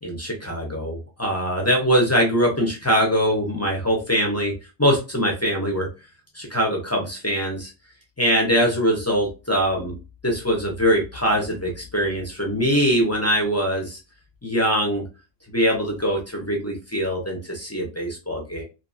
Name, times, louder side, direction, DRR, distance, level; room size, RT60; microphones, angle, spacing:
voice 1, 0.0-4.5 4.8-5.9 6.3-7.7 8.2-9.9 10.2-14.0 14.4-15.0 15.5-18.6, equal, 25° left, 0 dB, 0.3 m, -22 dB
2.8 x 2.3 x 2.4 m, 0.29 s
omnidirectional pair, 1.2 m